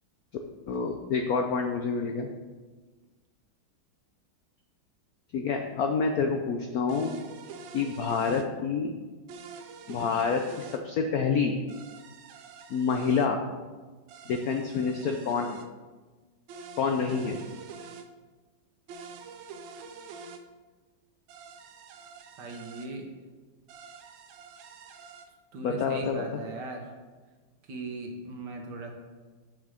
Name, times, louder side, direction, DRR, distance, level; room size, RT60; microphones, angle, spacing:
voice 1, 0.7-2.3 5.3-7.1 7.7-8.9 9.9-11.5 12.7-13.4 14.3-15.6 16.8-17.4 25.6-26.4, left 5 dB, 75° left, 4 dB, 0.8 m, -28 dB
sound 1, 6.9-8.5 9.3-10.8 11.7-13.3 14.1-15.7 16.5-18.1 18.9-20.4 21.3-22.9 23.7-25.3, right 5 dB, 75° right, 1.4 m, -46 dB
voice 2, 22.4-23.0 25.5-26.8 27.7-28.9, right 2 dB, 60° right, 2 dB, 1.6 m, -38 dB
6.4 x 6.1 x 4.9 m, 1.3 s
omnidirectional pair, 2.2 m